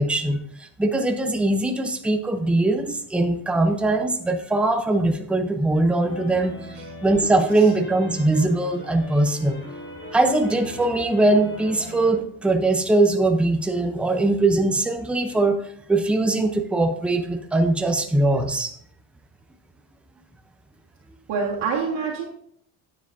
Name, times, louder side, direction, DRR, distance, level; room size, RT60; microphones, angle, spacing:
voice 1, 0.0-6.6 7.0-9.6 10.1-15.6 15.9-18.7, right 2 dB, 5° right, 6 dB, 0.5 m, -21 dB
sound 1, 6.0-12.1, left 1 dB, 25° left, 2.0 m, -39 dB
voice 2, 21.3-22.2, right 5 dB, 60° right, -4 dB, 1.7 m, -26 dB
9.4 x 7.5 x 2.6 m, 0.67 s
cardioid pair, 130°, 46 cm